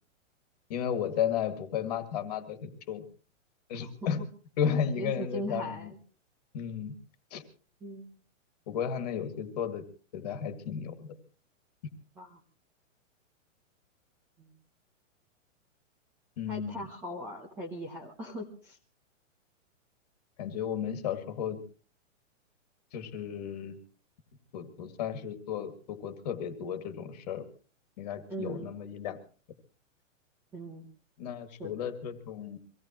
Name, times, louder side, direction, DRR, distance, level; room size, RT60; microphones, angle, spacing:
voice 1, 0.7-3.0 3.7-4.2 4.6-5.9 6.5-6.9 7.3-7.4 8.7-9.8 10.1-11.1 16.4-16.8 20.4-21.6 22.9-23.8 24.5-27.4 28.0-29.2 31.2-32.6, left 8 dB, 30° left, 10 dB, 2.0 m, -34 dB
voice 2, 5.0-6.0 7.8-8.1 12.2-12.4 14.4-14.5 16.5-18.8 28.3-28.7 30.5-30.9 31.6-31.7, equal, 5° right, 0 dB, 0.8 m, -39 dB
24.5 x 17.5 x 3.0 m, 0.39 s
hypercardioid pair, 175°, 39 cm